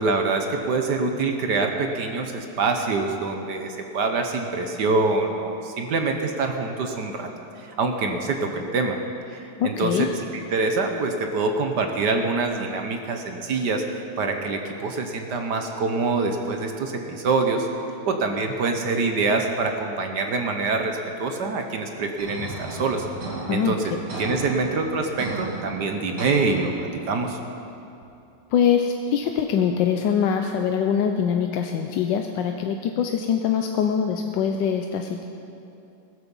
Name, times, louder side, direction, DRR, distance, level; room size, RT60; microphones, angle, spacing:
voice 1, 0.0-7.3 7.8-9.0 9.3-10.1 10.5-13.8 14.2-17.7 18.1-23.1 23.5-23.9 24.2-27.4, right 3 dB, 55° right, 4 dB, 1.4 m, -25 dB
voice 2, 9.6-10.1 23.5-23.7 28.5-35.3, left 8 dB, 70° left, 5 dB, 1.2 m, -23 dB
sound 1, 22.2-27.2, right 2 dB, 90° right, 3.5 m, -35 dB
16.0 x 13.0 x 5.4 m, 2.7 s
omnidirectional pair, 2.4 m